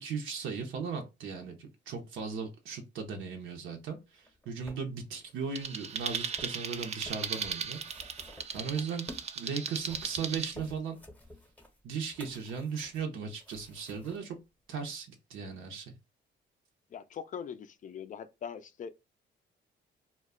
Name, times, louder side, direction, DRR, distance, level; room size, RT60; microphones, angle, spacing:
voice 1, 0.0-8.3 8.5-11.0 11.8-14.4 14.7-15.9, right 5 dB, 75° right, 0.6 m, -37 dB
sound 1, 4.2-9.3 9.7-14.2 15.0-15.1, left 1 dB, 10° left, 0.8 m, -52 dB
sound 2, 5.5-10.5, right 6 dB, 35° right, 0.4 m, -37 dB
voice 2, 16.9-18.9, left 7 dB, 40° left, 0.4 m, -41 dB
2.2 x 2.0 x 3.5 m
cardioid pair, 90°, 20 cm